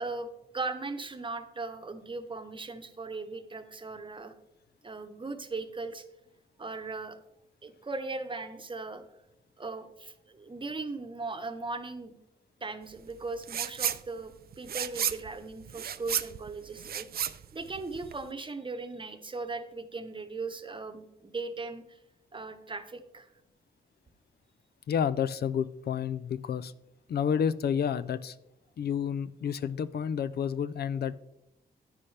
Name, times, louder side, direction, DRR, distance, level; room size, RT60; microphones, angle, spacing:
voice 1, 0.0-4.3 4.8-6.0 6.6-7.2 7.6-9.0 9.6-12.1 12.6-22.0 22.3-23.3, right 3 dB, 30° right, 8 dB, 0.9 m, -38 dB
sound 1, 13.4-14.0 14.3-18.3, right 9 dB, 65° right, 0.5 m, -33 dB
voice 2, 24.9-26.7 27.1-28.3 28.8-31.1, left 8 dB, 70° left, 16 dB, 0.4 m, -30 dB
9.8 x 9.8 x 3.3 m, 0.87 s
wide cardioid pair, 95°, 17 cm